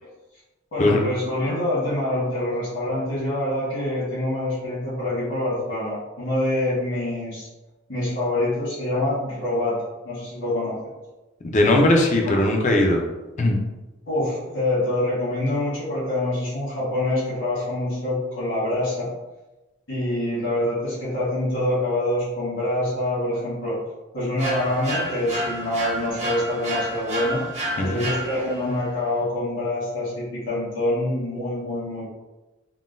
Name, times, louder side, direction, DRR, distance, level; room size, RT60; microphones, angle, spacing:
voice 1, 0.7-7.5 7.9-10.9 12.2-12.4 14.0-19.1 19.9-23.8 24.1-27.4 27.8-32.0, left 1 dB, 65° left, -10 dB, 1.3 m, -25 dB
voice 2, 11.4-13.0 13.4-13.6 27.8-28.1, left 1 dB, 35° left, 1 dB, 0.4 m, -19 dB
sound 1, 24.4-28.7, equal, 35° right, 0.7 m, -30 dB
3.7 x 2.2 x 2.5 m, 1.1 s
head